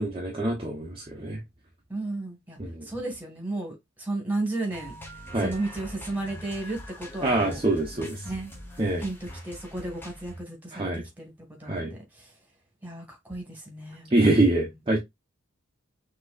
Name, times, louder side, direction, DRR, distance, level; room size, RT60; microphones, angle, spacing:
voice 1, 0.0-1.4 2.6-2.9 5.3-5.5 7.2-8.2 8.8-9.0 10.7-11.0 11.6-11.9 14.1-15.0, right 2 dB, 25° right, 1.0 m, -25 dB
voice 2, 1.9-2.6 2.8-4.9 5.4-7.6 8.2-8.5 9.0-11.3 11.6-11.9 12.1-12.3 12.8-14.5, right 2 dB, 10° right, 2.0 m, -34 dB
sound 1, 4.7-10.4, equal, 10° left, 1.3 m, -43 dB
6.1 x 3.1 x 2.5 m
head